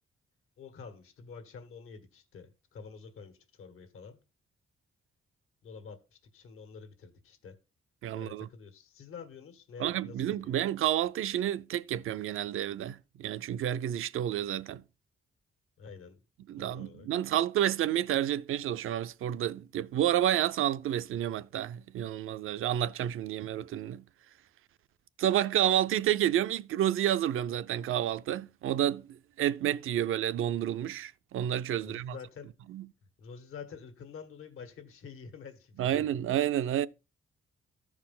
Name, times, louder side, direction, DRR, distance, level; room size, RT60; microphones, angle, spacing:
voice 1, 0.6-4.2 5.6-7.6 8.1-10.5 15.8-16.2 16.6-17.1 31.8-32.5 33.2-36.2, left 5 dB, 90° left, 1.6 m, -48 dB
voice 2, 8.0-8.5 9.8-14.8 16.5-24.0 25.2-32.2 32.7-32.9 35.8-36.9, right 11 dB, 75° right, 0.5 m, -30 dB
14.0 x 4.8 x 3.7 m
cardioid pair, 105°, 21 cm